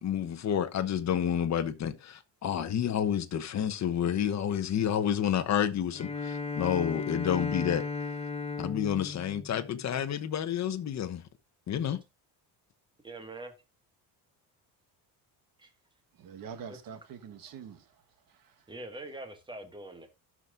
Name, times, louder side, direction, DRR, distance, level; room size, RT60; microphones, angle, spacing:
voice 1, 0.0-7.9 8.6-11.2 11.7-12.0, left 9 dB, 40° left, 1.1 m, -29 dB
Bowed string instrument, 5.9-10.4, left 4 dB, 15° left, 1.1 m, -36 dB
voice 2, 13.0-13.5 15.6-15.7 16.7-16.8 18.7-20.1, right 2 dB, 10° right, 1.8 m, -43 dB
voice 3, 16.1-18.7, right 7 dB, 55° right, 1.5 m, -46 dB
16.0 x 6.1 x 2.6 m
cardioid pair, 130°, 41 cm